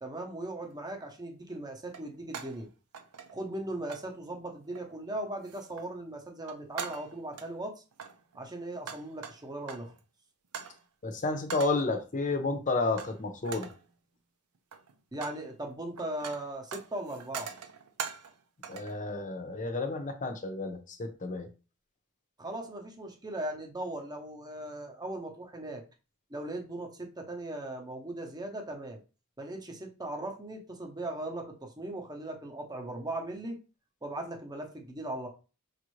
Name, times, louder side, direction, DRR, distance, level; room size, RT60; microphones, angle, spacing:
voice 1, 0.0-2.7 3.3-7.8 8.3-9.9 15.1-17.5 22.4-25.8 26.3-29.0 29.4-33.6 34.0-35.3, right 1 dB, 20° right, 3 dB, 0.8 m, -38 dB
sound 1, 0.6-0.8 1.9-2.6 2.9-3.6 3.9-4.1 4.7-5.1 5.4-5.9 6.3-7.5 7.9-10.0 10.5-10.8 11.5-11.9 13.0-13.2 13.4-13.8 14.6-15.4 15.7-18.4 18.6-19.0, right 6 dB, 90° right, 0.6 m, -42 dB
voice 2, 11.0-13.7 18.7-21.5, left 3 dB, 35° left, 6 dB, 0.7 m, -31 dB
5.2 x 2.5 x 3.1 m, 0.33 s
head